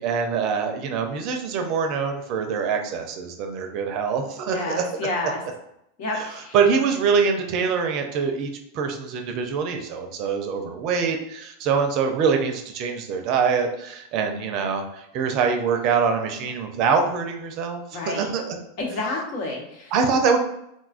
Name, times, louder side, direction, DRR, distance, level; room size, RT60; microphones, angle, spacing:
voice 1, 0.0-4.9 6.2-6.3 6.5-18.5 19.9-20.4, right 5 dB, 50° right, 5 dB, 0.5 m, -24 dB
voice 2, 4.5-5.4 6.0-6.6 17.9-18.3 18.8-19.9, left 2 dB, 60° left, -1 dB, 1.0 m, -29 dB
3.7 x 2.3 x 2.4 m, 0.79 s
hypercardioid pair, 100°, 0 cm